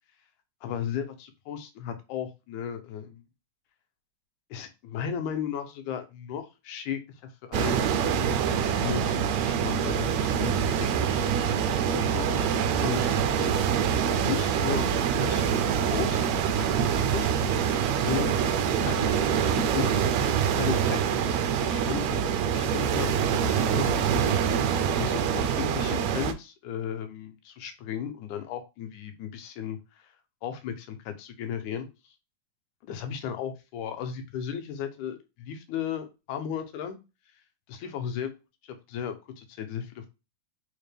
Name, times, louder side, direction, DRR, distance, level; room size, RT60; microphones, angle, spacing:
voice 1, 0.6-3.2 4.5-7.8 8.4-11.2 11.9-13.6 14.2-14.9 15.2-17.3 18.0-20.1 20.6-21.3 21.6-24.3 25.0-29.8 30.4-31.9 32.8-37.0 37.7-38.3 38.9-40.1, left 8 dB, 85° left, 7 dB, 2.1 m, -35 dB
sound 1, 7.5-26.3, right 8 dB, 80° right, 1.7 m, -25 dB
5.0 x 2.2 x 3.3 m, 0.27 s
omnidirectional pair, 3.4 m